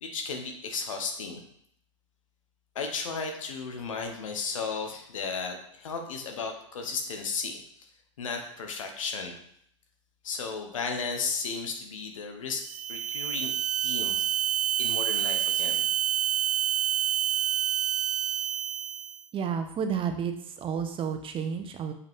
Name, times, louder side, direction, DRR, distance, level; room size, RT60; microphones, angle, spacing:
voice 1, 0.0-1.4 2.7-7.9 8.2-9.4 10.2-13.5 13.8-14.2 14.8-15.9, left 5 dB, 85° left, 4 dB, 1.2 m, -34 dB
sound 1, 12.6-19.2, right 10 dB, 80° right, 0.5 m, -28 dB
voice 2, 19.3-21.9, right 7 dB, 35° right, 6 dB, 1.1 m, -31 dB
6.8 x 5.2 x 3.7 m, 0.69 s
hypercardioid pair, 100°, 16 cm